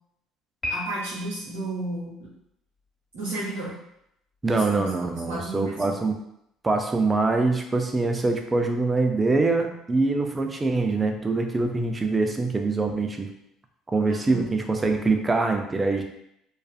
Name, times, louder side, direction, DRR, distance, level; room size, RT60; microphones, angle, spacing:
Piano, 0.6-1.6, left 1 dB, 35° left, 1.1 m, -33 dB
voice 1, 0.7-2.3 3.1-3.8 4.5-5.9 14.3-14.4, right 2 dB, 90° right, -8 dB, 0.9 m, -33 dB
voice 2, 4.4-6.1 6.6-13.3 13.9-16.0, right 3 dB, 25° right, 4 dB, 0.4 m, -24 dB
2.5 x 2.3 x 2.3 m, 0.78 s
supercardioid pair, 75°, 0 cm